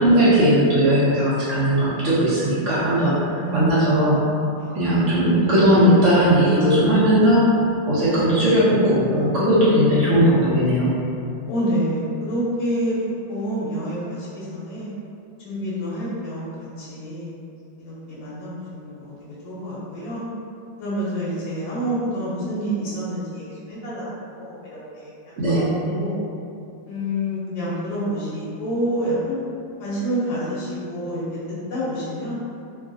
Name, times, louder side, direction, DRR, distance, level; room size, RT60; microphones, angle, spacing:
voice 1, 0.0-4.2 4.7-7.5 7.9-10.9 25.4-25.7, equal, 65° right, -10 dB, 0.7 m, -18 dB
voice 2, 3.4-3.9 4.6-4.9 11.5-12.9 13.3-14.9 15.4-17.3 17.8-19.1 19.4-20.2 20.8-26.3 26.9-29.4 29.8-31.2 31.7-32.3, equal, 90° left, -8 dB, 1.4 m, -28 dB
3.2 x 2.3 x 2.5 m, 2.6 s
omnidirectional pair, 2.0 m